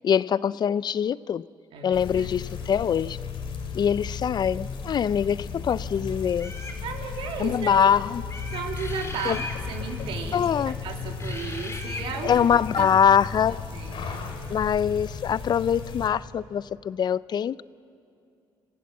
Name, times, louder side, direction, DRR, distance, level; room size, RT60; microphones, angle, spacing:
voice 1, 0.0-1.4 1.8-3.2 3.7-6.5 7.4-8.2 9.2-9.4 10.3-10.8 12.2-13.6 14.5-17.6, left 8 dB, 50° left, 19 dB, 0.4 m, -23 dB
voice 2, 1.7-2.4 6.8-7.8 8.5-9.4 9.7-12.3 12.8-12.9 13.7-14.3, right 6 dB, 75° right, 3 dB, 2.7 m, -35 dB
sound 1, 1.9-16.1, left 5 dB, 70° left, 2.9 m, -35 dB
sound 2, 6.4-6.8 8.3-9.6 11.2-12.1, left 2 dB, 30° left, 4.3 m, -38 dB
27.5 x 16.5 x 7.3 m, 2.6 s
cardioid pair, 80°, 9 cm